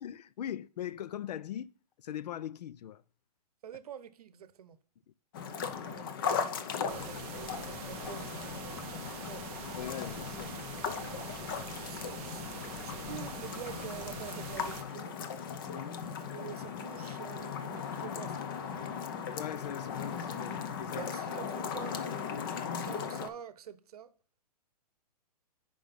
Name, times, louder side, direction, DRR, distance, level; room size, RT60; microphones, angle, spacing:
voice 1, 0.0-1.7 2.0-3.0 5.6-5.9 9.7-10.5 11.9-12.0 15.7-16.0 19.3-21.0, left 10 dB, 80° left, 0.4 m, -40 dB
voice 2, 3.6-4.8 5.8-9.7 10.9-11.3 11.8-15.2 16.1-18.7 20.9-22.1 22.8-24.1, right 9 dB, 65° right, 0.8 m, -47 dB
sound 1, 5.3-23.3, left 6 dB, 35° left, 0.6 m, -38 dB
sound 2, 6.9-14.8, right 9 dB, 20° right, 0.5 m, -45 dB
5.9 x 5.1 x 5.2 m
hypercardioid pair, 165°, 21 cm